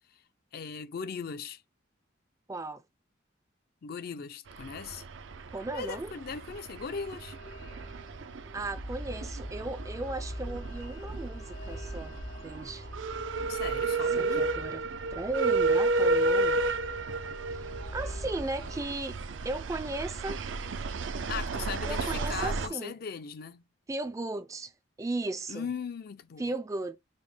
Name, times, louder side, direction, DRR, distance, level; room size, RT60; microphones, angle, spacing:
voice 1, 0.5-1.6 3.8-5.1 5.7-7.4 13.5-14.5 21.3-23.6 25.5-26.5, left 6 dB, 50° left, 0.4 m, -38 dB
voice 2, 2.5-2.8 5.5-6.1 8.5-12.9 14.2-14.8 15.1-16.7 17.5-19.2 19.4-20.4 21.9-22.9 23.9-24.7 25.0-25.7 26.4-27.0, right 2 dB, 15° right, 0.3 m, -36 dB
sound 1, 4.5-22.7, right 3 dB, 80° right, 0.5 m, -32 dB
sound 2, 6.9-18.8, equal, 85° left, 2.1 m, -43 dB
5.2 x 2.1 x 3.3 m
head